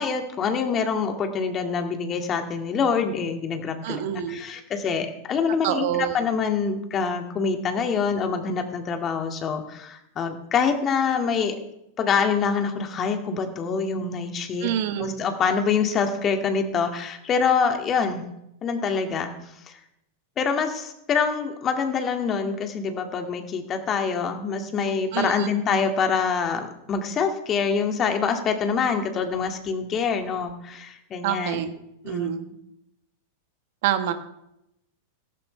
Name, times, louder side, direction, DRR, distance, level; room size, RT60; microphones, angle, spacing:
voice 1, 0.0-4.0 4.3-5.9 6.1-11.6 12.0-14.7 15.0-18.2 18.6-19.3 19.6-19.8 20.4-31.6 32.0-32.3, left 6 dB, 30° left, 5 dB, 2.1 m, -25 dB
voice 2, 3.8-4.4 5.6-6.2 14.6-15.2 25.1-25.5 31.2-31.7 32.0-32.5 33.8-34.1, right 10 dB, 55° right, 9 dB, 1.3 m, -26 dB
16.5 x 15.5 x 3.3 m, 0.81 s
figure-of-eight pair, 95°, 0 cm